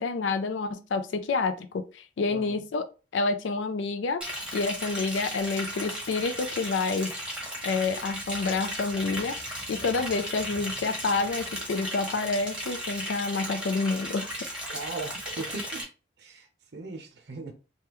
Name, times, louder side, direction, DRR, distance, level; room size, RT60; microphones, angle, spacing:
voice 1, 0.0-2.8 3.1-4.2 4.5-7.1 7.6-14.3, left 4 dB, 85° left, 0.4 m, -28 dB
Liquid, 4.2-15.8, equal, 5° right, 0.9 m, -36 dB
voice 2, 14.7-15.8 16.2-16.5 16.7-17.5, right 3 dB, 60° right, 0.6 m, -38 dB
3.4 x 2.2 x 2.9 m
head